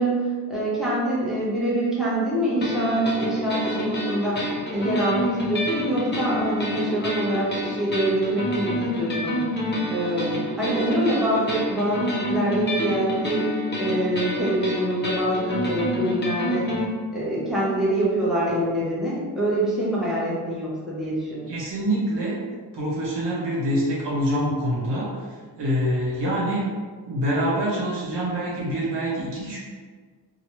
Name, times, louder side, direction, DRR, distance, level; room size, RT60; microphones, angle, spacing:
voice 1, 0.0-4.5 4.7-9.4 9.9-13.4 13.8-16.6 17.1-21.5, right 1 dB, ahead, -8 dB, 0.9 m, -25 dB
sound 1, 2.6-16.9, left 1 dB, 25° left, 0.8 m, -28 dB
voice 2, 21.5-22.4 22.7-25.1 25.6-26.7 27.1-29.6, equal, 70° right, -6 dB, 1.1 m, -25 dB
3.0 x 2.3 x 3.0 m, 1.5 s
cardioid pair, 75°, 43 cm